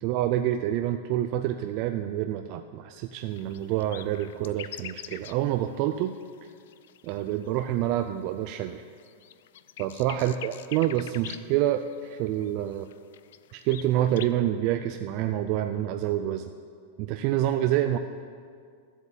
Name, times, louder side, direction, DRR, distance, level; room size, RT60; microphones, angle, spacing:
voice 1, 0.0-6.1 7.0-8.8 9.8-12.9 13.5-16.5 17.0-18.0, right 12 dB, 35° right, 8 dB, 0.4 m, -27 dB
sound 1, 3.1-8.2 8.7-14.3, left 11 dB, 65° left, 0.4 m, -45 dB
13.0 x 8.1 x 7.2 m, 2.2 s
supercardioid pair, 170°, 0 cm